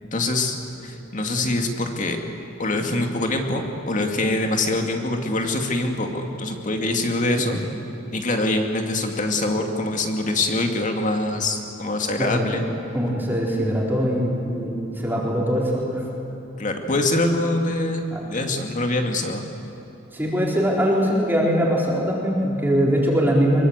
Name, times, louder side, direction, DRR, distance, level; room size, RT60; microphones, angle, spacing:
voice 1, 0.1-0.6 0.8-2.2 2.6-7.6 8.1-12.7 16.6-19.4, left 2 dB, 40° left, 3 dB, 2.4 m, -24 dB
voice 2, 12.2-12.6 12.9-16.0 18.1-18.2 20.1-23.7, equal, 10° right, -3 dB, 4.2 m, -22 dB
23.5 x 23.5 x 8.2 m, 2.9 s
head